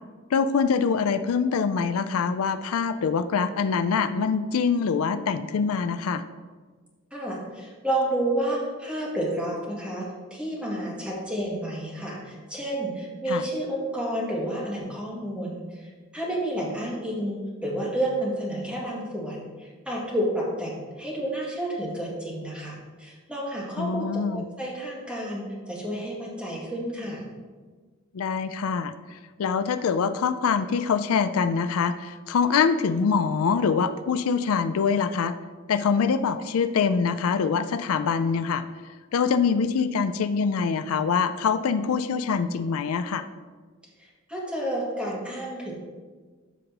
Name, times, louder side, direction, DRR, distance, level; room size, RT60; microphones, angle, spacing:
voice 1, 0.3-6.2 13.3-13.4 23.8-24.4 28.1-28.9 29.4-35.4 35.7-38.6 39.1-43.2, left 5 dB, 80° left, 11 dB, 0.4 m, -24 dB
voice 2, 7.1-27.2 44.0-45.7, right 1 dB, 5° right, -5 dB, 2.0 m, -30 dB
13.5 x 5.3 x 2.9 m, 1.4 s
head